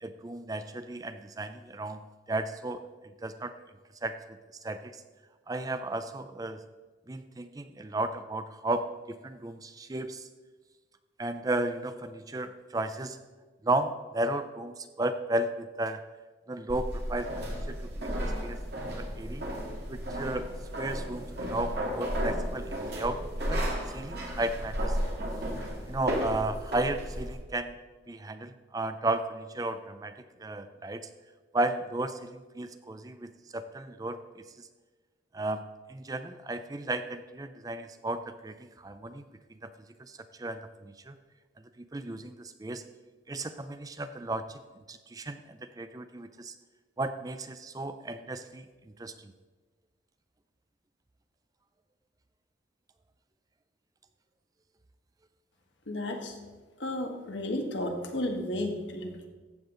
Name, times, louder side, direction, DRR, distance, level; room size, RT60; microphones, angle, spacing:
voice 1, 0.0-2.0 2.3-2.8 3.2-3.5 4.0-4.4 4.6-5.0 5.5-6.7 7.1-10.3 11.2-13.2 13.6-16.0 16.5-18.6 18.9-19.4 19.9-20.5 20.8-23.2 23.5-23.7 23.9-25.0 25.9-27.7 28.1-31.1 31.5-34.7 35.3-35.6 35.9-39.2 39.6-39.7 40.0-41.2 41.8-42.8 43.3-44.6 44.9-46.5 47.0-48.7 49.0-49.3, right 2 dB, 20° right, 10 dB, 0.4 m, -34 dB
sound 1, 16.7-27.4, equal, 55° right, 2.1 m, -33 dB
voice 2, 55.9-56.4 56.8-59.3, left 1 dB, 75° left, 3 dB, 1.5 m, -33 dB
14.0 x 8.0 x 3.8 m, 1.3 s
head